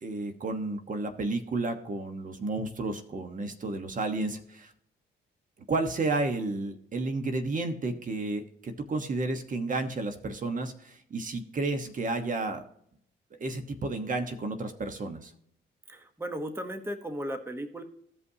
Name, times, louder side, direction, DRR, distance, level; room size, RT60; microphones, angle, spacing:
voice 1, 0.0-4.7 5.7-12.6 13.3-15.3, right 2 dB, 40° right, 6 dB, 1.2 m, -32 dB
voice 2, 15.9-17.8, equal, 10° right, 6 dB, 1.1 m, -36 dB
16.0 x 5.5 x 2.8 m, 0.68 s
cardioid pair, 90°, 20 cm